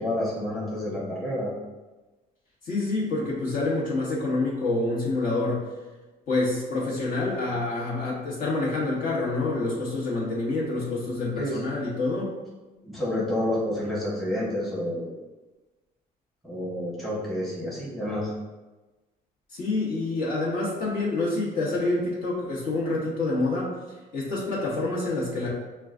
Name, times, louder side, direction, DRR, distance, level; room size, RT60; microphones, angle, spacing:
voice 1, 0.0-1.5 11.4-11.6 12.8-15.1 16.4-18.3, left 1 dB, ahead, -7 dB, 1.0 m, -29 dB
voice 2, 2.6-5.7 6.3-12.4 19.5-23.8 24.1-25.5, left 2 dB, 55° left, -6 dB, 1.4 m, -27 dB
5.6 x 2.3 x 2.5 m, 1.2 s
cardioid pair, 110°, 17 cm